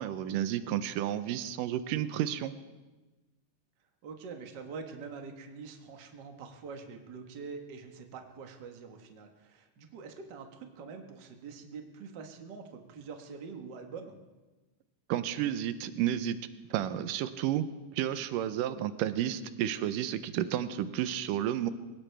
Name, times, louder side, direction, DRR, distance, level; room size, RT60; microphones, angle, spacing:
voice 1, 0.0-2.5 15.1-16.4 16.7-17.7 17.9-21.7, right 11 dB, 90° right, 12 dB, 2.3 m, -31 dB
voice 2, 4.0-14.2, right 5 dB, 50° right, 4 dB, 1.4 m, -45 dB
21.5 x 18.0 x 3.4 m, 1.2 s
omnidirectional pair, 3.7 m